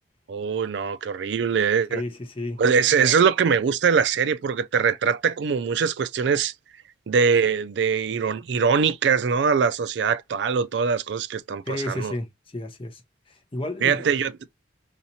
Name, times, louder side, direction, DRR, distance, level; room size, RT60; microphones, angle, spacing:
voice 1, 0.3-2.0 2.6-6.5 7.1-12.1 13.8-14.3, right 6 dB, 65° right, 0.4 m, -22 dB
voice 2, 1.9-2.6 11.7-13.0 13.3-14.0, left 1 dB, 30° left, 0.7 m, -32 dB
5.6 x 2.9 x 2.7 m
head